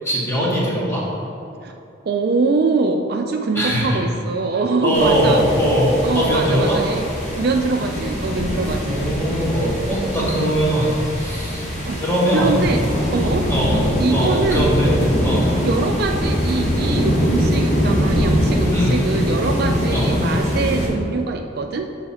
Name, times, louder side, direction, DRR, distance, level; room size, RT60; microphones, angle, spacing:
voice 1, 0.0-1.0 3.5-4.0 4.8-6.8 8.8-11.6 12.0-12.7 13.5-13.8 14.1-14.9 15.2-15.5 18.7-19.0 19.9-20.1, equal, 15° left, -6 dB, 1.5 m, -20 dB
voice 2, 2.1-5.4 6.0-7.1 7.4-9.5 10.2-10.5 11.8-12.0 12.3-12.8 13.1-13.5 14.0-14.7 15.6-22.0, right 3 dB, 50° right, 4 dB, 0.4 m, -23 dB
sound 1, 4.9-20.9, equal, 35° left, 1.4 m, -22 dB
7.0 x 5.8 x 4.2 m, 2.8 s
head